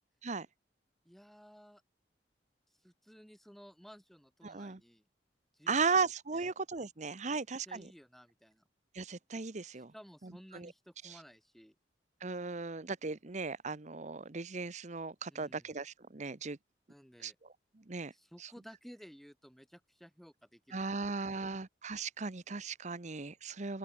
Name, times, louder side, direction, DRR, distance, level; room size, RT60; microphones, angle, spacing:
voice 1, 1.0-1.8 2.7-5.0 5.5-6.6 7.2-8.6 9.7-11.7 15.3-15.7 16.9-17.4 18.1-21.5, equal, ahead, 6.5 m, -56 dB
voice 2, 4.4-4.8 5.7-7.9 8.9-9.9 10.5-10.7 11.0-11.1 12.2-16.6 17.2-17.3 17.9-18.1 18.4-18.5 20.7-23.8, right 4 dB, 40° right, 1.0 m, -36 dB
open air
head